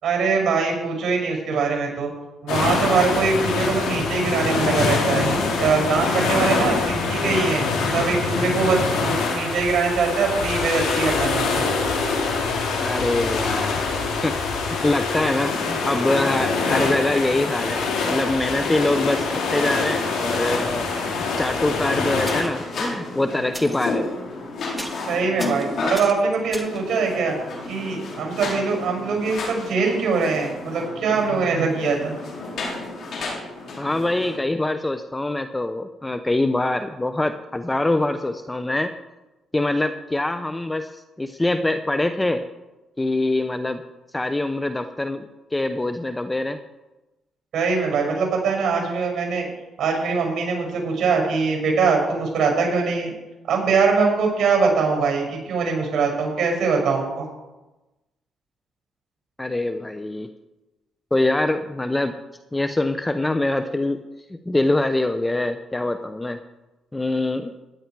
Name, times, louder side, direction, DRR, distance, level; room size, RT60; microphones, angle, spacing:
voice 1, 0.0-2.1 2.4-5.3 5.6-11.7 25.1-27.4 27.7-32.1 47.5-49.5 49.8-53.1 53.5-57.3, right 4 dB, 60° right, 1 dB, 6.1 m, -22 dB
sound 1, 2.5-22.4, left 4 dB, 85° left, 3.5 m, -24 dB
voice 2, 12.8-13.8 14.2-14.4 14.7-24.1 33.8-38.9 39.5-42.4 43.0-43.8 44.1-46.6 59.4-60.3 61.1-62.2 62.5-64.0 64.3-66.4 66.9-67.5, left 2 dB, 15° left, 9 dB, 0.7 m, -24 dB
sound 2, 21.7-34.4, left 2 dB, 60° left, 4.2 m, -32 dB
sound 3, 21.8-21.9 22.2-22.6 23.5-23.8 24.3-24.5 24.8-25.1 25.4-26.9 29.2-29.3 29.5-29.6, right 1 dB, 5° right, 1.6 m, -36 dB
15.5 x 10.5 x 4.7 m, 1.0 s
cardioid pair, 90°, 0 cm